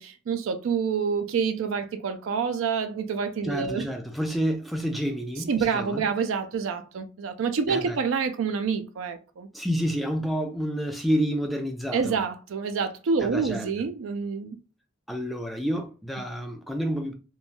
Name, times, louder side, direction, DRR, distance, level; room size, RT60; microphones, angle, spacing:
voice 1, 0.0-3.9 5.5-9.5 11.9-14.6, right 5 dB, 85° right, 0.4 m, -27 dB
voice 2, 3.4-6.0 7.7-8.0 9.5-12.2 13.2-13.7 15.1-17.1, equal, ahead, 0.4 m, -29 dB
3.0 x 2.2 x 2.4 m
head